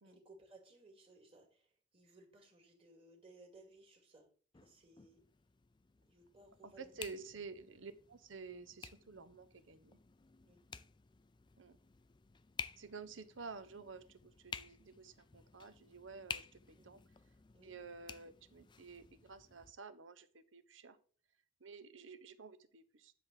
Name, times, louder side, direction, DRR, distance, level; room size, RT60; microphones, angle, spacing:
voice 1, 0.0-4.3 4.5-5.2 6.0-7.3 10.4-10.7 16.7-16.9 17.5-17.7, right 2 dB, 30° right, 3 dB, 2.3 m, -61 dB
sound 1, 4.5-19.7, left 6 dB, 25° left, 0.4 m, -52 dB
voice 2, 6.8-10.0 11.6-11.8 12.8-17.0 17.6-21.0 21.6-23.1, right 4 dB, 90° right, 12 dB, 1.0 m, -51 dB
10.5 x 3.6 x 7.3 m, 0.42 s
head